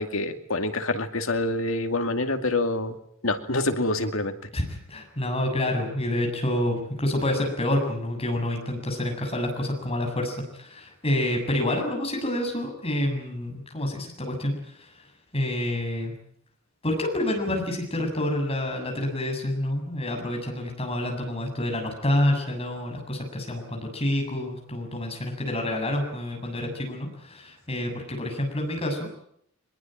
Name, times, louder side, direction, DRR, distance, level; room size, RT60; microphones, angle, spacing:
voice 1, 0.0-3.0 3.2-4.3, left 2 dB, 80° left, 6 dB, 2.4 m, -26 dB
voice 2, 4.5-14.5 15.3-16.1 16.8-29.1, left 1 dB, 30° left, 3 dB, 7.3 m, -28 dB
23.5 x 21.5 x 9.0 m, 0.71 s
head